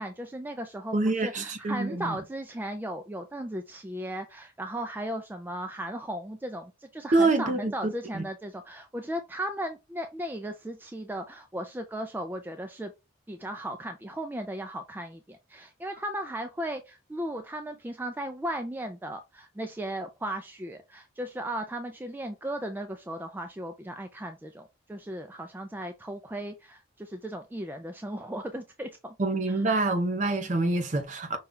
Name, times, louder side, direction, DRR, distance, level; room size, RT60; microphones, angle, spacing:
voice 1, 0.0-12.9 13.3-29.2 29.5-29.6, right 1 dB, 10° right, 0.3 m, -36 dB
voice 2, 0.9-2.2 7.1-8.2 29.2-31.4, right 2 dB, 40° right, 0.6 m, -26 dB
5.4 x 2.3 x 3.6 m
head